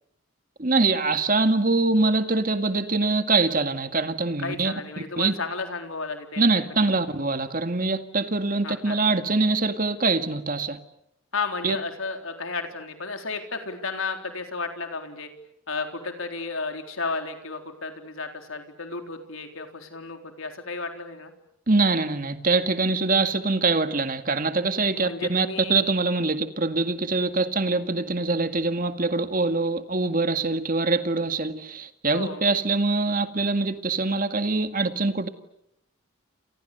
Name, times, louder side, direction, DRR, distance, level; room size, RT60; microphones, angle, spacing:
voice 1, 0.6-4.7 5.2-5.3 6.4-10.8 11.6-11.8 21.7-35.3, right 3 dB, 40° right, 8 dB, 2.0 m, -24 dB
voice 2, 4.4-6.4 6.8-7.0 8.6-9.0 11.3-15.3 15.7-21.3 24.9-25.7 32.1-32.4, left 4 dB, 80° left, 5 dB, 3.9 m, -33 dB
30.0 x 28.5 x 6.8 m, 0.77 s
head